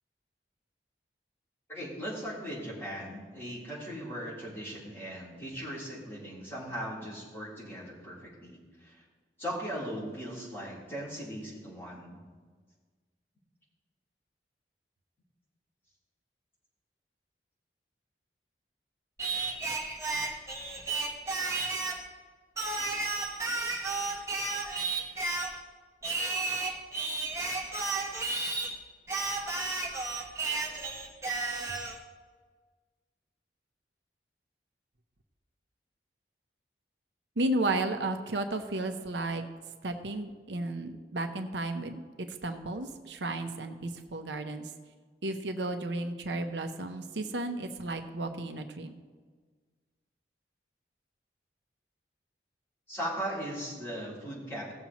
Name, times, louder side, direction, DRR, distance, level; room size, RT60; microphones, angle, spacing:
voice 1, 1.7-9.0 9.4-12.2 52.9-54.7, equal, 15° left, -8 dB, 3.6 m, -38 dB
Singing, 19.2-22.1 22.6-25.6 26.0-28.7 29.1-32.0, right 3 dB, 15° right, 1.2 m, -33 dB
voice 2, 37.4-39.4 39.8-42.0 42.4-44.7 45.2-48.9, right 2 dB, 85° right, 6 dB, 0.8 m, -33 dB
17.0 x 7.1 x 3.0 m, 1.5 s
head